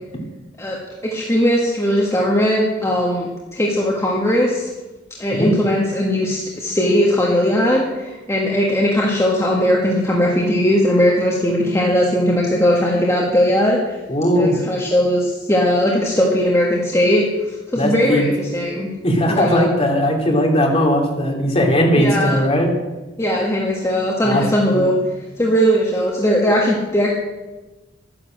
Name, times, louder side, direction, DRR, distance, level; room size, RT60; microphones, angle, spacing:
voice 1, 1.0-4.7 5.2-13.8 14.3-17.2 17.7-18.9 19.3-19.7 21.9-22.4 23.2-24.9 25.4-27.1, equal, 15° left, -3 dB, 1.7 m, -18 dB
voice 2, 14.1-14.5 17.7-18.3 19.0-22.7 24.2-24.9, equal, 35° left, 0 dB, 2.9 m, -18 dB
12.5 x 10.0 x 7.6 m, 1.2 s
head